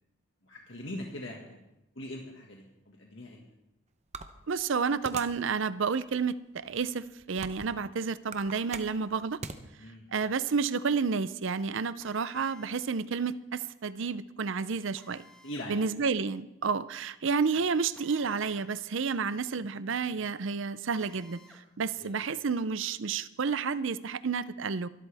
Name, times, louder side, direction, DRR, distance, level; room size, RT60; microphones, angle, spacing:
voice 1, 0.4-1.6 2.0-3.4 9.8-10.1 15.4-15.8 22.0-22.2, left 1 dB, 60° left, -1 dB, 1.9 m, -41 dB
sound 1, 4.1-5.5 6.0-6.1 6.8-7.8 8.2-9.6, right 4 dB, 30° right, 0.8 m, -41 dB
voice 2, 4.5-9.4 10.1-15.2 15.7-21.4 21.8-24.9, right 5 dB, 65° right, 15 dB, 0.6 m, -30 dB
Drill, 12.0-12.8 14.9-15.7 17.9-18.7 19.1-19.2 21.0-21.7, left 1 dB, 5° left, 1.6 m, -56 dB
23.0 x 12.5 x 3.5 m, 0.92 s
head